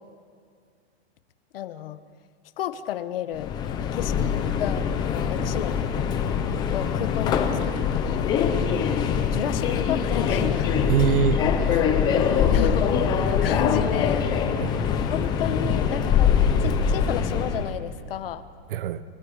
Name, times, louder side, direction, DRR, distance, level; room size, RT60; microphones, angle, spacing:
voice 1, 1.5-2.0 2.6-3.5 3.9-5.9 6.7-8.3 9.3-10.7 12.0-14.3 14.8-16.3 16.6-18.4, left 11 dB, 60° left, 1.1 m, -32 dB
Subway metro underground, 3.3-17.7, left 7 dB, 15° left, 0.7 m, -23 dB
voice 2, 10.8-12.4 14.5-14.8 18.7-19.0, right 8 dB, 55° right, 1.0 m, -26 dB
29.0 x 24.0 x 5.0 m
supercardioid pair, 175°, 33 cm